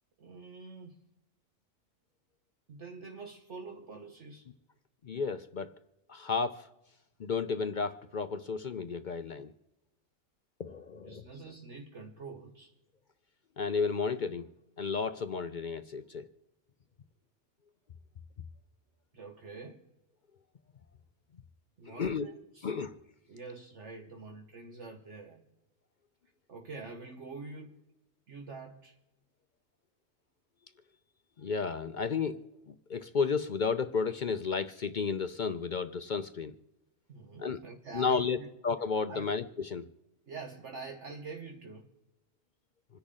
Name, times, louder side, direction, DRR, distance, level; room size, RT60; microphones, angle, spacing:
voice 1, 0.2-1.0 2.7-4.5 11.0-12.7 19.1-19.8 21.8-22.7 23.3-25.4 26.5-27.8 28.3-29.0 37.1-38.5 39.1-39.3 40.3-41.9, right 4 dB, 60° right, 1.5 m, -46 dB
voice 2, 5.0-5.7 6.1-6.7 7.2-9.5 10.6-11.2 13.6-14.5 14.8-16.3 21.9-22.3 22.6-23.0 31.4-32.4 32.9-36.5 37.4-37.6 37.9-38.4 38.6-39.9, left 5 dB, 50° left, 0.6 m, -32 dB
27.0 x 10.5 x 3.7 m
omnidirectional pair, 1.4 m